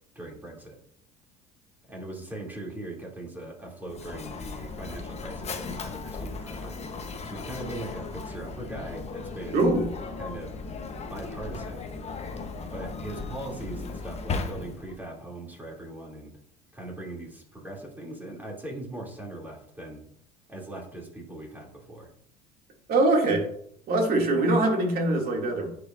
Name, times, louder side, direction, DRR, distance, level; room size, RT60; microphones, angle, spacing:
voice 1, 0.1-0.8 1.9-6.8 7.2-9.6 10.2-10.5 11.1-11.8 12.7-16.3 16.7-20.0 20.5-22.1, right 1 dB, 10° right, -2 dB, 2.6 m, -40 dB
Mechanisms, 3.9-15.0, left 4 dB, 35° left, 1.0 m, -36 dB
voice 2, 9.5-9.9 22.9-23.4 23.9-25.7, right 2 dB, 50° right, 0 dB, 2.4 m, -23 dB
10.0 x 4.9 x 2.5 m, 0.67 s
supercardioid pair, 80°, 20 cm